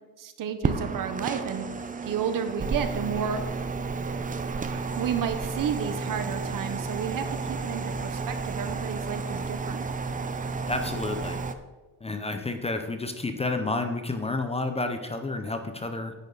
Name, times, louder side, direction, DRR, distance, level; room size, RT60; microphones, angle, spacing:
voice 1, 0.2-1.7 2.0-3.4 4.7-9.8, right 7 dB, 55° right, 9 dB, 1.1 m, -32 dB
sound 1, 0.6-11.5, right 4 dB, 20° right, 0.6 m, -32 dB
voice 2, 10.7-11.4 12.0-16.1, left 2 dB, 15° left, 7 dB, 0.7 m, -30 dB
10.5 x 8.9 x 4.1 m, 1.2 s
cardioid pair, 130°, 40 cm